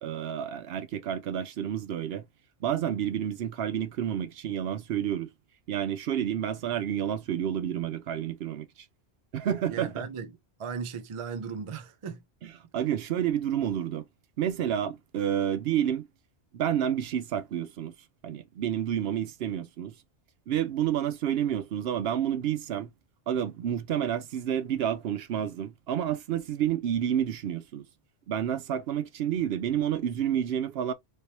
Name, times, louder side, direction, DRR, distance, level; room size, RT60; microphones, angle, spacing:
voice 1, 0.0-2.2 2.6-5.3 5.7-8.7 9.3-10.0 12.7-14.0 14.4-16.1 16.5-17.9 18.2-19.9 20.5-22.9 23.3-27.8 28.3-30.9, right 10 dB, 70° right, 0.7 m, -29 dB
voice 2, 9.7-10.3 10.6-12.2, right 6 dB, 45° right, 0.4 m, -36 dB
3.3 x 2.9 x 2.7 m
omnidirectional pair, 1.1 m